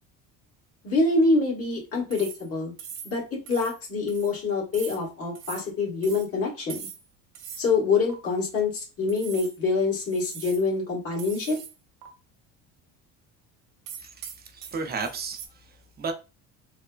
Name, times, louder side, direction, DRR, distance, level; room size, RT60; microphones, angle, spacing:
voice 1, 0.8-2.7 3.0-6.9 7.6-11.6, left 3 dB, 45° left, 1.5 m, -25 dB
sound 1, 2.1-2.5 2.8-3.2 3.5-3.8 4.1-4.3 4.7-5.0 5.3-5.7 6.0-6.3 6.7-7.1 7.3-7.7 8.1-8.2 9.1-9.6 10.0-10.7 11.2-11.7 12.0-12.1 13.9-15.5, right 8 dB, 70° right, 0.8 m, -41 dB
voice 2, 14.0-16.1, right 4 dB, 30° right, 0.5 m, -34 dB
3.1 x 2.1 x 2.3 m
cardioid pair, 115°, 33 cm